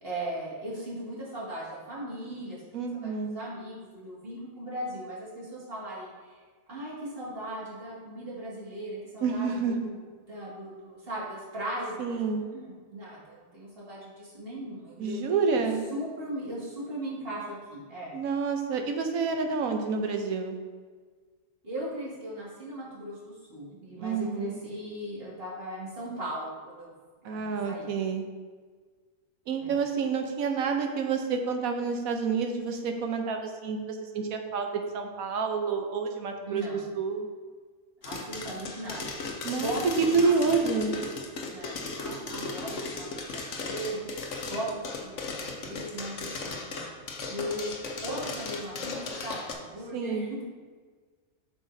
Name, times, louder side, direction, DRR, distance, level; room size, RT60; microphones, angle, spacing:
voice 1, 0.0-2.6 3.0-6.4 6.7-10.0 10.3-15.2 15.5-15.6 15.9-18.1 21.6-26.9 27.2-27.9 29.6-29.8 36.5-36.9 38.0-40.7 41.5-44.1 44.4-46.9 47.3-47.7 48.0-50.4, right 1 dB, 45° right, -7 dB, 2.3 m, -38 dB
voice 2, 2.7-3.3 9.2-9.9 12.0-12.4 15.0-15.9 18.1-20.6 24.0-24.6 27.2-28.2 29.5-37.3 39.4-39.7 40.0-41.0 49.9-50.3, right 5 dB, 80° right, 4 dB, 1.2 m, -28 dB
sound 1, 38.0-49.5, left 3 dB, 65° left, 1.1 m, -36 dB
7.9 x 6.1 x 2.7 m, 1.5 s
omnidirectional pair, 1.4 m